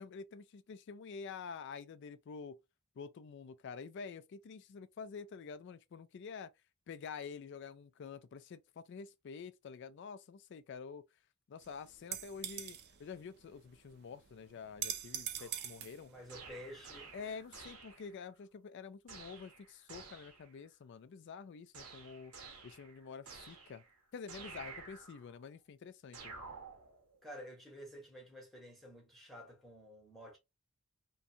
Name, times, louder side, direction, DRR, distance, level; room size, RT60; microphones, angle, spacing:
voice 1, 0.0-2.6 3.0-6.5 6.9-11.1 11.5-16.1 17.1-22.3 22.6-23.8 24.1-26.3, left 5 dB, 50° left, 0.3 m, -48 dB
sound 1, 11.6-17.7, right 9 dB, 50° right, 0.4 m, -45 dB
sound 2, 15.4-15.9 16.3-18.3 19.1-20.6 21.7-24.0 24.3-25.4 26.1-27.2, right 4 dB, 90° right, 0.9 m, -52 dB
voice 2, 16.0-17.1 27.2-30.4, equal, ahead, 0.9 m, -51 dB
2.5 x 2.2 x 2.7 m
head